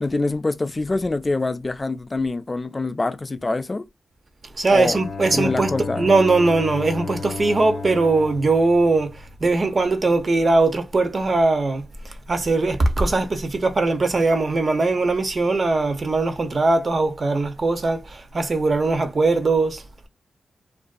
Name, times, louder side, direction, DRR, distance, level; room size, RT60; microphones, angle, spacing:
voice 1, 0.0-3.9 4.7-5.0 5.3-6.1, left 3 dB, 35° left, 0.3 m, -25 dB
voice 2, 4.6-19.8, right 3 dB, 50° right, 0.7 m, -20 dB
Bowed string instrument, 4.8-9.6, left 4 dB, 60° left, 0.7 m, -33 dB
2.5 x 2.3 x 2.2 m
supercardioid pair, 45°, 0 cm